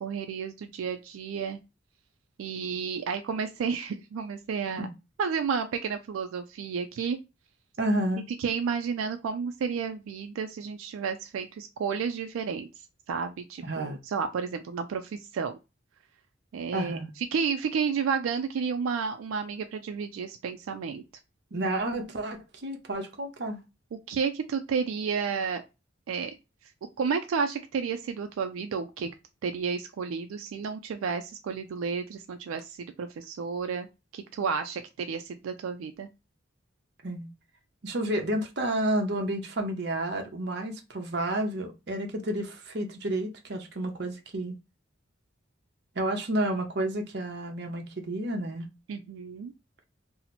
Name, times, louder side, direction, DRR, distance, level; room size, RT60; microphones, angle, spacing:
voice 1, 0.0-1.6 2.4-4.9 5.2-7.2 8.4-12.7 13.1-15.6 16.5-21.0 23.9-25.6 26.1-26.4 26.6-26.7 27.0-29.1 29.4-33.9 34.1-36.1 48.9-49.5, right 6 dB, 85° right, 0.3 m, -31 dB
voice 2, 7.8-8.2 13.6-14.0 16.7-17.1 21.5-23.6 37.0-37.3 37.8-44.6 46.0-48.7, right 1 dB, 55° right, 0.7 m, -30 dB
2.8 x 2.0 x 4.0 m
head